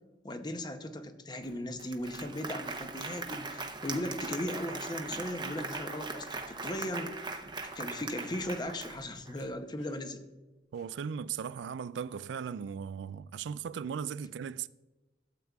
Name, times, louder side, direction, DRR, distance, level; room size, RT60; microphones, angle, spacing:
voice 1, 0.2-7.2 7.7-10.2, left 1 dB, 25° left, 0.7 m, -37 dB
Applause, 1.4-1.5 1.8-9.3, right 3 dB, 25° right, 0.7 m, -40 dB
sound 1, 5.5-5.7 6.9-7.0 7.3-7.8 8.1-8.7 9.0-9.1 9.3-10.2 10.7-11.2, left 3 dB, 70° left, 1.7 m, -61 dB
voice 2, 10.7-14.7, right 7 dB, 85° right, 0.3 m, -37 dB
12.5 x 8.1 x 2.3 m
head